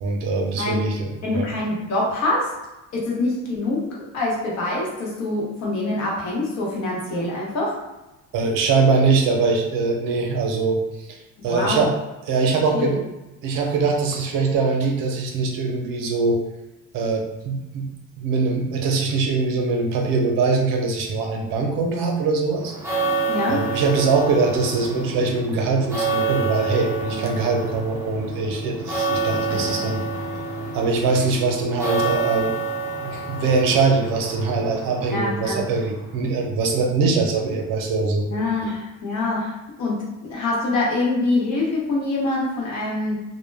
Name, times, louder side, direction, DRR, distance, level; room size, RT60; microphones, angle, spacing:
voice 1, 0.0-1.5 8.3-10.8 11.1-11.2 11.4-11.9 12.3-13.0 13.4-16.4 16.9-17.9 18.2-22.7 23.5-30.0 30.7-32.6 33.0-38.2, right 4 dB, 80° right, 2 dB, 0.6 m, -22 dB
voice 2, 1.2-2.5 2.9-3.9 4.1-7.8 11.5-11.9 12.7-13.0 23.3-23.6 35.1-35.6 38.3-43.2, left 2 dB, 55° left, -4 dB, 0.9 m, -25 dB
sound 1, 22.6-36.2, right 3 dB, 10° right, 0.4 m, -28 dB
2.1 x 2.1 x 3.2 m, 1.0 s
cardioid pair, 165°, 33 cm